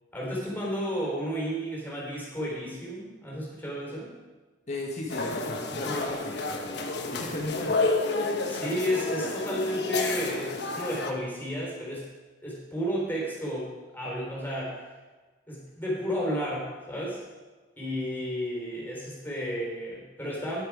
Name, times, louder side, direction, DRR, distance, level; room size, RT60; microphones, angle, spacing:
voice 1, 0.1-4.1 8.5-12.1 12.4-14.8 15.5-17.2 17.8-20.6, equal, 10° left, -5 dB, 3.8 m, -32 dB
voice 2, 4.7-6.7 7.1-7.8, left 1 dB, 40° left, -2 dB, 1.5 m, -35 dB
sound 1, 5.1-11.1, left 3 dB, 65° left, 1.1 m, -30 dB
10.5 x 8.9 x 4.8 m, 1.3 s
head